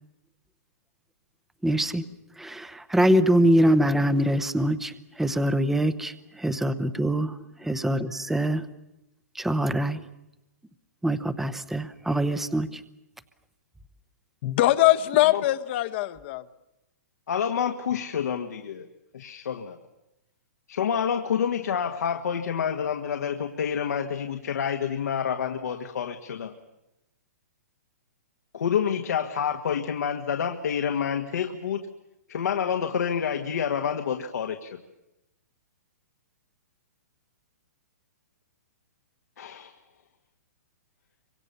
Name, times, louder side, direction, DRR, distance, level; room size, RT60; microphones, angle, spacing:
voice 1, 1.6-2.0 2.4-8.6 9.3-10.0 11.0-12.8, right 1 dB, 5° right, 0.9 m, -24 dB
voice 2, 14.4-16.4, left 16 dB, 40° left, 1.1 m, -22 dB
voice 3, 17.3-18.9 19.1-19.8 20.7-26.5 28.5-31.9 32.3-34.7 39.4-39.7, left 7 dB, 75° left, 1.7 m, -28 dB
27.0 x 25.0 x 6.9 m
hypercardioid pair, 150°, 9 cm